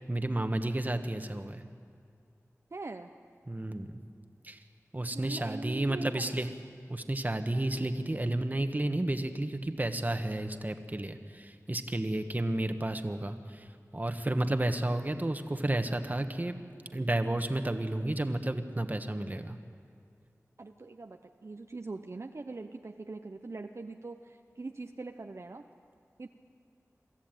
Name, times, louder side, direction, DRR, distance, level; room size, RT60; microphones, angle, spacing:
voice 1, 0.1-1.6 3.5-4.0 4.4-4.6 4.9-6.5 6.9-13.7 13.9-16.6 16.9-19.6, right 1 dB, 30° right, 7 dB, 1.3 m, -31 dB
voice 2, 2.7-3.1 5.1-6.3 20.6-25.6 26.2-26.3, right 3 dB, 55° right, 5 dB, 0.8 m, -42 dB
23.5 x 14.0 x 9.0 m, 2.3 s
wide cardioid pair, 55°, 6 cm